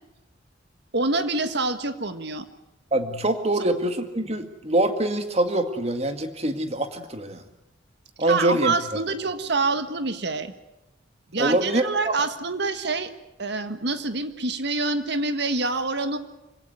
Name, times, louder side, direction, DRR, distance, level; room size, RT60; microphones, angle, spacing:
voice 1, 0.9-2.5 8.3-10.5 11.3-13.1 13.4-16.2, right 3 dB, 60° right, 10 dB, 1.7 m, -26 dB
voice 2, 2.9-7.4 8.2-9.0 11.4-12.1, right 1 dB, 35° right, 7 dB, 2.1 m, -24 dB
25.5 x 17.0 x 9.4 m, 0.97 s
head